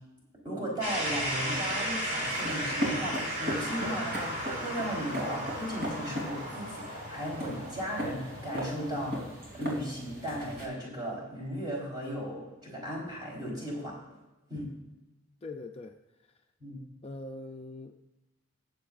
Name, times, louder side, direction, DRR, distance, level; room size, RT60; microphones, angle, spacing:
voice 1, 0.4-9.2 9.5-14.0 14.5-14.7 16.6-16.8, equal, 20° right, -3 dB, 4.2 m, -36 dB
sound 1, 0.8-10.6, equal, 35° right, 3.6 m, -36 dB
sound 2, 0.8-10.7, equal, 55° right, 3.5 m, -39 dB
voice 2, 15.4-16.0 17.0-18.0, left 2 dB, 30° left, 4 dB, 0.5 m, -42 dB
20.0 x 7.8 x 2.5 m, 1.0 s
head